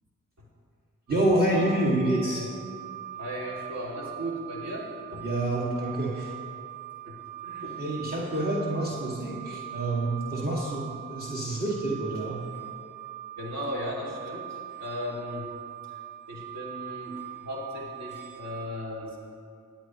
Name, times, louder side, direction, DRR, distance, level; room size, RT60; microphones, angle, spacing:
voice 1, 1.1-2.5 5.2-6.3 7.8-12.4, right 1 dB, 30° right, -5 dB, 2.1 m, -27 dB
sound 1, 1.1-18.6, right 13 dB, 85° right, 2.5 m, -42 dB
voice 2, 3.1-5.3 7.0-7.2 7.4-8.1 8.9-9.0 13.4-15.5 15.9-16.0 16.3-19.2, equal, 55° right, -5 dB, 2.6 m, -37 dB
17.0 x 9.0 x 3.1 m, 2.4 s
cardioid pair, 45°, 31 cm